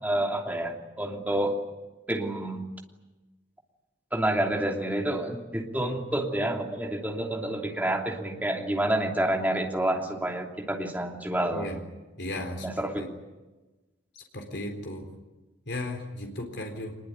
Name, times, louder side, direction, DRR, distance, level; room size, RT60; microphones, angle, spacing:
voice 1, 0.0-1.6 2.1-2.6 4.1-11.7 12.6-13.0, right 1 dB, 10° right, 1 dB, 2.9 m, -28 dB
voice 2, 12.2-12.7 13.0-13.1 14.3-15.1 15.7-16.9, left 1 dB, 65° left, 3 dB, 4.0 m, -35 dB
24.5 x 21.5 x 9.9 m, 1.1 s
head